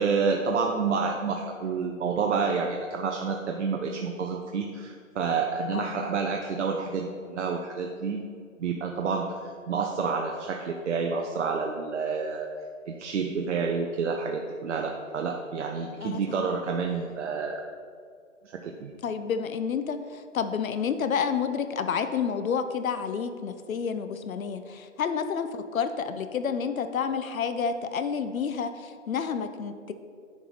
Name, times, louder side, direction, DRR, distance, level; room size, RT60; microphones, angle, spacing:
voice 1, 0.0-8.2 8.6-12.5 12.9-17.6 18.5-18.9, right 5 dB, 60° right, 3 dB, 0.7 m, -29 dB
voice 2, 5.7-6.1 16.0-16.5 19.0-29.9, left 6 dB, 80° left, 9 dB, 0.8 m, -30 dB
9.6 x 4.8 x 4.1 m, 2.3 s
hypercardioid pair, 155°, 41 cm